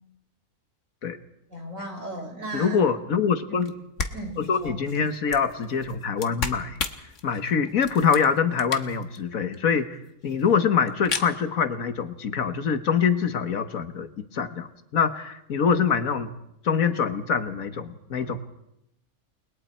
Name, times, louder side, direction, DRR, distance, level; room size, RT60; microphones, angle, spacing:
voice 1, 1.5-2.9 3.5-3.6 4.1-4.8, right 1 dB, 70° right, 2 dB, 5.9 m, -36 dB
voice 2, 2.5-3.7 4.4-6.8 7.2-10.0 10.2-16.3 16.6-18.4, left 6 dB, 80° left, 9 dB, 1.7 m, -24 dB
sound 1, 3.6-3.7 4.0-9.2 9.5-9.6 9.8-9.9 10.1-10.5 10.9-11.3, left 4 dB, 65° left, 1.6 m, -34 dB
30.0 x 21.0 x 4.4 m, 0.83 s
omnidirectional pair, 1.4 m